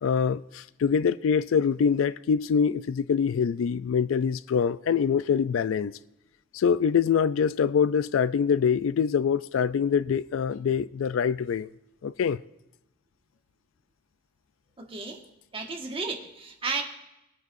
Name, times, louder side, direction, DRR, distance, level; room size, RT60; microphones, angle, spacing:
voice 1, 0.0-6.0 6.5-11.7 12.0-12.4, left 6 dB, 80° left, 0.4 m, -24 dB
voice 2, 14.8-15.2 15.5-16.8, right 4 dB, 30° right, 1.5 m, -33 dB
20.5 x 9.3 x 2.6 m
head